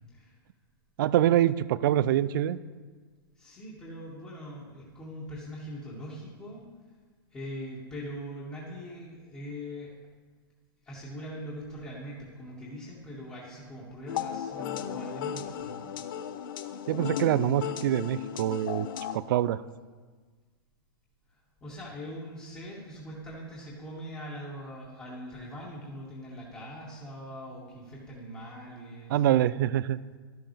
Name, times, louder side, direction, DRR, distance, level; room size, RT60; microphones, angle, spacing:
voice 1, 1.0-2.6 16.9-18.9 19.1-19.6 29.1-30.0, right 12 dB, 55° right, 18 dB, 0.4 m, -25 dB
voice 2, 3.4-6.6 7.3-9.9 10.8-15.8 21.3-29.2, equal, 20° left, -7 dB, 2.4 m, -42 dB
sound 1, 14.1-19.2, left 9 dB, 60° left, 0.7 m, -35 dB
12.5 x 7.7 x 3.5 m, 1.5 s
hypercardioid pair, 110°, 13 cm